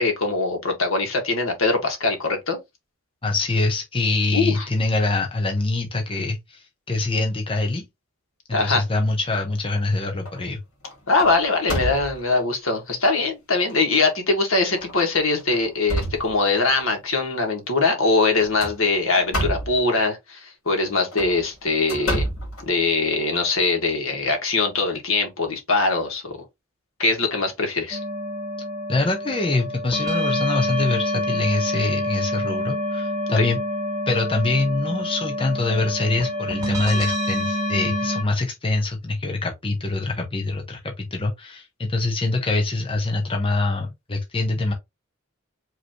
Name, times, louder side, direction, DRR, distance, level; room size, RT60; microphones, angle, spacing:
voice 1, 0.0-2.6 4.3-4.7 8.5-8.8 11.1-22.3 22.7-26.4 27.0-28.0 33.4-33.5, left 3 dB, 70° left, 1.7 m, -22 dB
voice 2, 3.2-7.8 8.5-10.6 28.9-33.6 34.1-44.7, left 2 dB, 25° left, 0.9 m, -24 dB
sound 1, 9.2-9.8 10.3-10.5 10.8-12.4 13.1-13.2 13.7-13.8 14.7-14.9 15.4-16.8 18.4-19.8 21.0-23.2, right 1 dB, 85° left, 2.3 m, -29 dB
sound 2, 27.9-38.2, left 1 dB, 20° right, 2.0 m, -27 dB
5.1 x 3.0 x 3.0 m
head